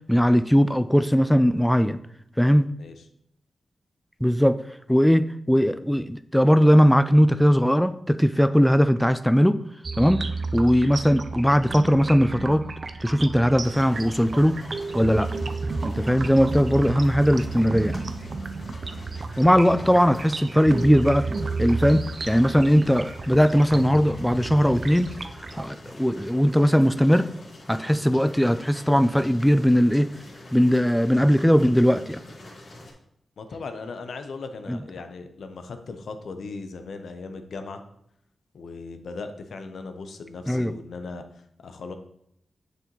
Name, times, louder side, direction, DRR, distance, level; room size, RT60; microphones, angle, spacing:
voice 1, 0.1-2.0 2.4-2.7 4.2-4.6 4.9-9.6 10.0-10.2 10.5-12.6 13.0-14.6 14.9-15.3 15.8-18.1 19.4-21.3 21.6-25.1 25.6-27.3 27.7-30.1 30.5-32.2 34.7-34.8 40.5-40.7, equal, 5° left, 12 dB, 0.3 m, -19 dB
sound 1, 9.8-25.6, right 3 dB, 55° right, 0.6 m, -32 dB
sound 2, 13.6-32.9, left 1 dB, 60° left, 1.8 m, -45 dB
voice 2, 33.4-37.8 38.5-41.9, left 4 dB, 80° left, 7 dB, 0.7 m, -38 dB
6.9 x 6.8 x 3.0 m, 0.74 s
cardioid pair, 55°, 0 cm